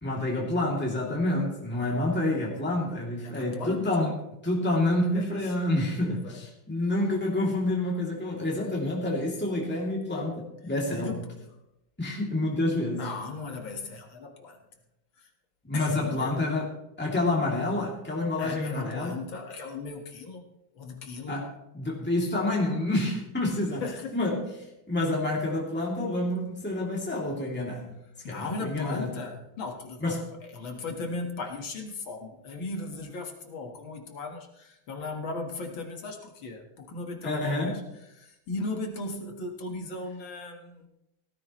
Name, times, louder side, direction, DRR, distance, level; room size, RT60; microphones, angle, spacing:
voice 1, 0.0-4.1 4.4-11.2 12.0-13.1 15.6-19.2 21.3-23.8 24.1-27.9 28.3-29.1 30.0-30.3 37.2-37.8, left 2 dB, 5° left, -3 dB, 2.7 m, -28 dB
voice 2, 1.7-2.1 3.2-3.9 5.0-5.6 6.0-6.4 10.9-11.5 13.0-14.6 15.2-15.3 15.7-16.4 18.4-20.5 20.7-21.4 23.7-24.2 28.2-30.2 30.4-37.8 38.1-40.9, left 3 dB, 70° left, 3 dB, 2.4 m, -37 dB
17.5 x 14.5 x 3.1 m, 0.86 s
omnidirectional pair, 2.3 m